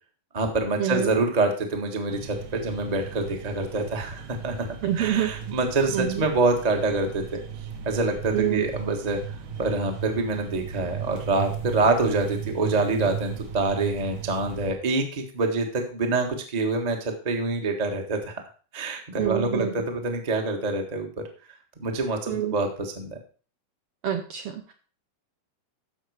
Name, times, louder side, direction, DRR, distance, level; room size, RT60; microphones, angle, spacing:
voice 1, 0.3-4.7 4.9-7.4 7.8-9.2 9.6-18.4 18.7-21.1 21.8-23.2, right 3 dB, 35° right, 3 dB, 0.6 m, -26 dB
sound 1, 2.1-14.7, right 8 dB, 90° right, 2.9 m, -36 dB
voice 2, 4.8-5.3 5.9-6.2 8.3-8.6 19.2-19.7 22.3-22.5 24.0-24.7, right 11 dB, 70° right, 5 dB, 1.5 m, -26 dB
13.5 x 5.4 x 4.8 m, 0.39 s
omnidirectional pair, 3.5 m